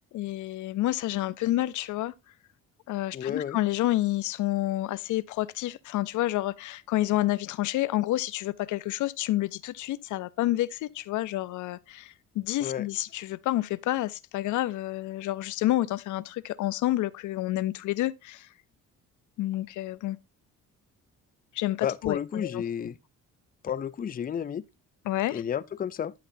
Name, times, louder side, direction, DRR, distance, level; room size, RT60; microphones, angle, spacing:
voice 1, 0.1-2.1 2.9-18.5 19.4-20.2 21.5-22.6 25.1-25.4, left 15 dB, 80° left, 0.5 m, -29 dB
voice 2, 3.1-3.6 12.6-12.9 21.8-23.0 23.6-24.6 25.3-26.1, left 8 dB, 30° left, 0.5 m, -31 dB
12.0 x 5.9 x 2.6 m
cardioid pair, 90°, 30 cm